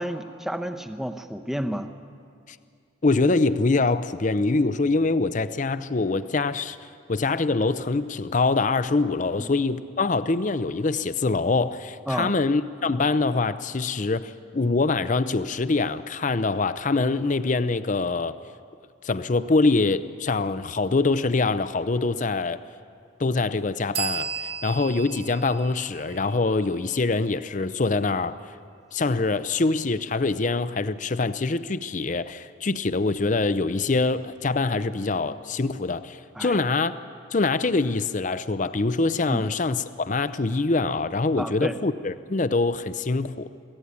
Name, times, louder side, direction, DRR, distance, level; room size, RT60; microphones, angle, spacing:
voice 1, 0.0-1.9 9.4-9.5 12.1-12.3 36.3-36.6 39.3-39.4 41.4-41.7, equal, ahead, 8 dB, 0.8 m, -30 dB
voice 2, 3.0-6.8 7.1-18.4 19.0-22.6 23.2-28.4 28.9-36.9 37.3-43.5, left 3 dB, 40° left, 13 dB, 0.6 m, -24 dB
sound 1, 23.9-27.5, right 8 dB, 50° right, 2.3 m, -35 dB
23.5 x 15.5 x 9.6 m, 2.4 s
head